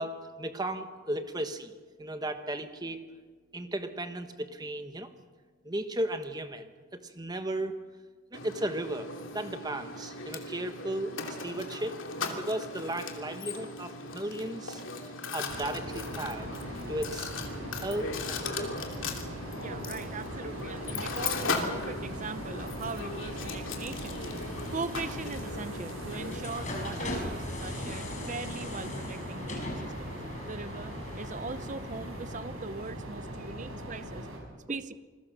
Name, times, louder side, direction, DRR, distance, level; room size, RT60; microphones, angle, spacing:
voice 1, 0.0-1.7 2.0-3.0 3.5-5.1 5.6-7.7 8.3-9.1 9.3-11.1 11.4-12.0 12.3-16.5 16.9-17.3 17.8-18.7 34.7-34.9, right 1 dB, 20° right, 8 dB, 1.4 m, -35 dB
Mechanisms, 8.3-26.5, left 3 dB, 65° left, 2.9 m, -38 dB
sound 1, 15.5-34.4, equal, 80° right, 6.9 m, -40 dB
voice 2, 19.5-30.2 30.5-34.3 34.7-34.9, right 4 dB, 35° right, 14 dB, 0.6 m, -40 dB
sound 2, 22.1-32.8, left 1 dB, 35° left, 5.4 m, -41 dB
28.5 x 21.5 x 6.7 m, 1.4 s
head